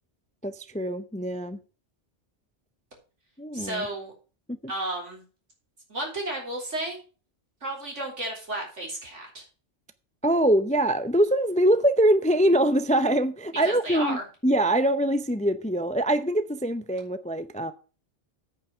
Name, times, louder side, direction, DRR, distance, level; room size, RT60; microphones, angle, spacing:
voice 1, 0.4-1.6 3.4-3.9 4.5-4.6 10.2-14.2 14.4-17.7, right 1 dB, 10° left, 0.4 m, -23 dB
voice 2, 3.5-4.1 4.7-5.2 5.9-7.0 7.6-9.5 13.6-14.2, right 1 dB, 90° right, 4.0 m, -33 dB
8.8 x 5.7 x 7.1 m
omnidirectional pair, 1.2 m